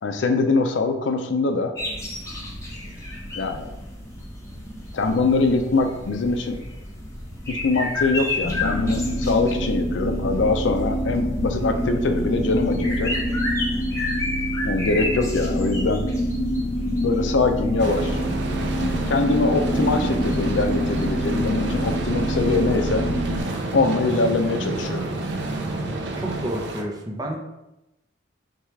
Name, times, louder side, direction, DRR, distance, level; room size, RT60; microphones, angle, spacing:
voice 1, 0.0-1.7 3.3-3.7 4.9-6.6 7.5-13.1 14.6-16.1 17.0-18.2 18.8-23.1 23.7-25.1, left 3 dB, 75° left, 6 dB, 0.5 m, -23 dB
sound 1, 1.7-21.1, left 2 dB, 15° left, 1.0 m, -33 dB
sound 2, 8.4-23.4, equal, 40° left, 1.2 m, -26 dB
sound 3, 17.8-26.8, right 2 dB, 70° right, 0.6 m, -29 dB
voice 2, 26.2-27.4, right 1 dB, 20° right, 1 dB, 0.6 m, -30 dB
6.0 x 2.4 x 3.2 m, 0.94 s
head